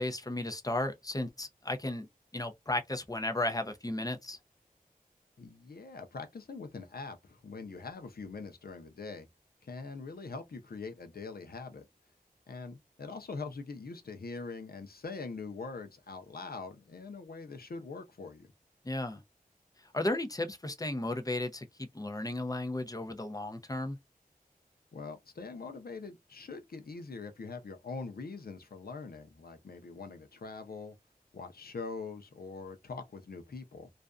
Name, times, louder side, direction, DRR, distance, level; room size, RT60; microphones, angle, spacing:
voice 1, 0.0-2.1 2.3-4.4 18.8-19.2 19.9-24.0, left 1 dB, 25° left, 0.6 m, -34 dB
voice 2, 5.4-9.3 9.6-11.9 12.5-18.5 24.9-30.9 31.3-33.9, left 4 dB, 80° left, 0.6 m, -43 dB
2.5 x 2.2 x 2.3 m
wide cardioid pair, 60°, 15 cm